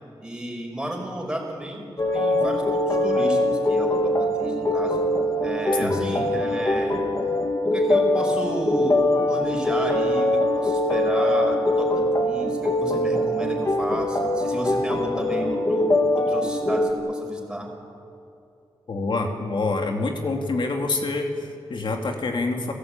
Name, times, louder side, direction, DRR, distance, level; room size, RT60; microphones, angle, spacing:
voice 1, 0.2-1.9 2.1-5.0 5.4-7.0 7.6-9.0 9.3-17.7, right 1 dB, 10° right, 0 dB, 5.6 m, -32 dB
sound 1, 2.0-16.9, left 1 dB, 35° left, 2.5 m, -23 dB
voice 2, 5.8-6.2 18.9-22.7, left 3 dB, 55° left, 3 dB, 2.6 m, -26 dB
30.0 x 16.0 x 9.0 m, 2.7 s
wide cardioid pair, 125°, 10 cm